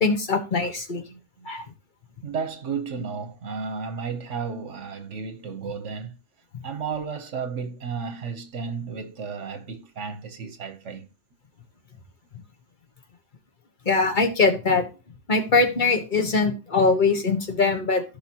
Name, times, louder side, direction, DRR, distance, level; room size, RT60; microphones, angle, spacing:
voice 1, 0.0-1.0 1.4-1.6 13.8-14.8 15.3-18.0, left 4 dB, 40° left, 1.5 m, -22 dB
voice 2, 1.1-1.5 2.2-6.2 6.6-11.1, right 5 dB, 80° right, 1.5 m, -33 dB
15.0 x 5.3 x 3.0 m
omnidirectional pair, 1.2 m